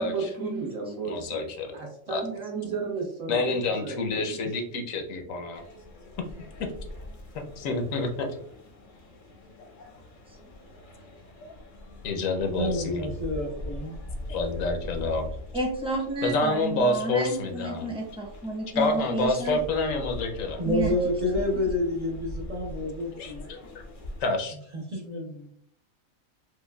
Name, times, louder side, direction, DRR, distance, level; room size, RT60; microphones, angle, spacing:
voice 1, 0.0-1.5 1.7-4.5, right 4 dB, 75° right, -1 dB, 1.4 m, -34 dB
voice 2, 1.1-1.7 2.1-2.2 3.3-5.6 6.6-6.7 7.3-8.3 11.4-11.5 12.0-13.1 14.3-15.3 16.2-17.9 18.8-20.6 23.2-23.8 24.2-24.6, left 2 dB, 75° left, 4 dB, 1.0 m, -28 dB
voice 3, 2.2-2.7 15.5-19.6 20.6-20.9, right 1 dB, 5° right, -2 dB, 0.7 m, -31 dB
sound 1, 5.5-24.2, left 1 dB, 45° left, 0.7 m, -42 dB
voice 4, 12.5-14.0 20.6-23.5 24.7-25.5, left 1 dB, 40° right, -3 dB, 0.7 m, -29 dB
4.7 x 2.2 x 2.2 m, 0.65 s
omnidirectional pair, 1.4 m